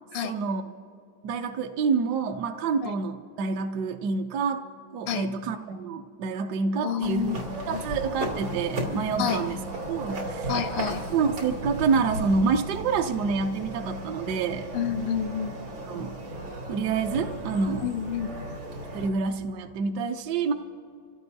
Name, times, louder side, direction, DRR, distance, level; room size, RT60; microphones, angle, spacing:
voice 1, 0.2-0.6 1.2-4.6 4.9-7.4 7.7-9.6 9.9-10.5 11.1-14.7 15.9-16.1 16.7-17.9 18.9-20.5, right 5 dB, 70° right, 5 dB, 1.1 m, -27 dB
voice 2, 6.8-7.4 7.7-7.8 9.2-9.4 10.5-11.0 14.7-15.5 17.8-18.3, left 8 dB, 85° left, 8 dB, 1.4 m, -29 dB
sound 1, 7.0-19.1, right 1 dB, 85° right, 3.5 m, -35 dB
27.0 x 16.5 x 2.7 m, 2.5 s
omnidirectional pair, 2.1 m